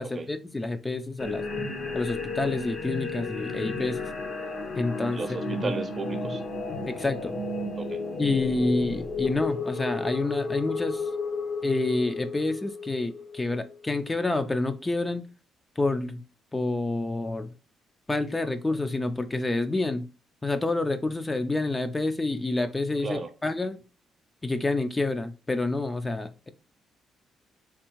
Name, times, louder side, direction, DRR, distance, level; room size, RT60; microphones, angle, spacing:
voice 1, 0.0-1.4 1.9-4.0 4.7-5.7 6.8-7.4 8.2-11.1 11.6-15.2 15.8-16.2 16.5-17.5 18.1-20.1 20.4-23.8 24.4-26.5, left 2 dB, 20° left, 0.3 m, -28 dB
sound 1, 1.2-13.9, left 3 dB, 60° left, 0.8 m, -33 dB
voice 2, 5.1-6.4 7.8-8.0 23.0-23.3, right 3 dB, 40° right, 0.6 m, -34 dB
3.5 x 2.7 x 2.9 m
cardioid pair, 90°, 0 cm